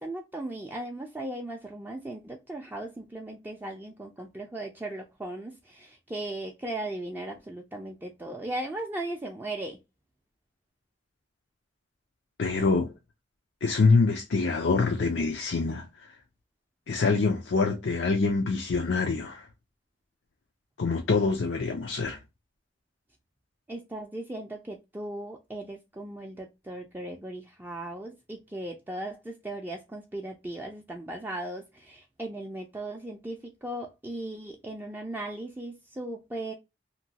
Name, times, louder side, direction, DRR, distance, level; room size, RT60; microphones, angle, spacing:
voice 1, 0.0-9.8 23.7-36.5, right 1 dB, 10° right, 0.4 m, -37 dB
voice 2, 12.4-12.9 13.6-15.8 16.9-19.5 20.8-22.2, left 4 dB, 85° left, 0.5 m, -25 dB
2.9 x 2.2 x 2.7 m
head